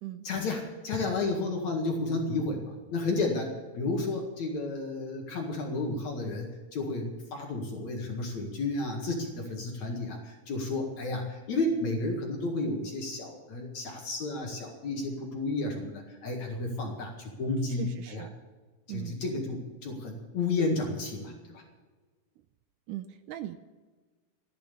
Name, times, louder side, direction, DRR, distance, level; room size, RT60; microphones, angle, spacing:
voice 1, 0.2-18.3 18.9-21.6, left 2 dB, 55° left, 1 dB, 3.0 m, -32 dB
voice 2, 17.7-18.3 18.9-19.2 22.9-23.6, right 13 dB, 80° right, 10 dB, 2.0 m, -39 dB
15.0 x 10.5 x 6.9 m, 1.3 s
omnidirectional pair, 4.1 m